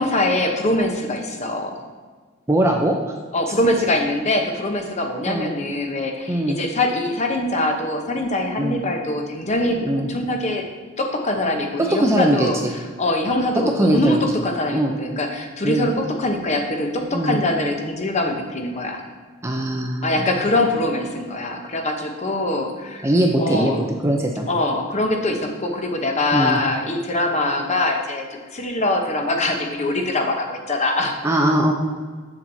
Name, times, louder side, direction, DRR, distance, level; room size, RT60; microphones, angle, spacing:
voice 1, 0.0-1.8 3.3-10.6 11.0-12.6 13.0-19.0 20.0-23.1 23.4-23.8 24.5-28.3 28.5-31.2, left 2 dB, 35° left, 3 dB, 0.8 m, -23 dB
voice 2, 2.5-3.1 5.3-5.5 6.3-6.6 8.6-8.8 9.8-10.1 11.8-12.7 13.8-14.2 14.7-15.0 15.6-15.9 17.1-17.4 19.4-20.2 23.0-23.8 24.0-24.5 26.3-26.6 31.2-31.7, right 1 dB, 15° right, 2 dB, 0.5 m, -20 dB
7.2 x 7.1 x 2.7 m, 1.5 s
head